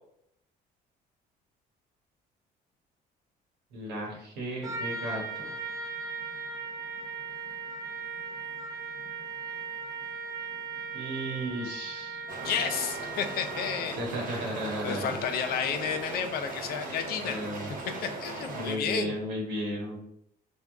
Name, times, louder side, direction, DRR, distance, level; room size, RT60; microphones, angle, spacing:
voice 1, 3.7-5.5 10.9-12.2 14.0-15.2 17.2-17.7 18.5-20.0, right 1 dB, 85° right, -1 dB, 1.4 m, -34 dB
Trumpet, 4.6-14.0, right 5 dB, 20° right, 0.6 m, -38 dB
sound 1, 12.3-18.8, right 2 dB, 55° right, 0.9 m, -38 dB
voice 2, 12.4-14.0 14.3-17.4 17.9-19.2, left 7 dB, 65° left, 6 dB, 0.5 m, -32 dB
3.4 x 2.3 x 3.6 m, 0.75 s
cardioid pair, 110°, 17 cm